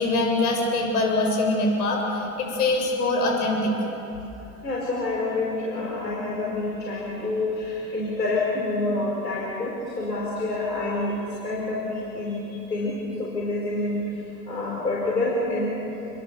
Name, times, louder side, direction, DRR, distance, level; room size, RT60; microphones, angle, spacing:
voice 1, 0.0-3.7, left 2 dB, 65° left, 1 dB, 7.6 m, -23 dB
voice 2, 4.6-11.1 11.4-14.0 14.5-15.9, left 2 dB, 85° left, -4 dB, 5.0 m, -27 dB
28.5 x 22.5 x 7.1 m, 2.9 s
figure-of-eight pair, 85°, 48 cm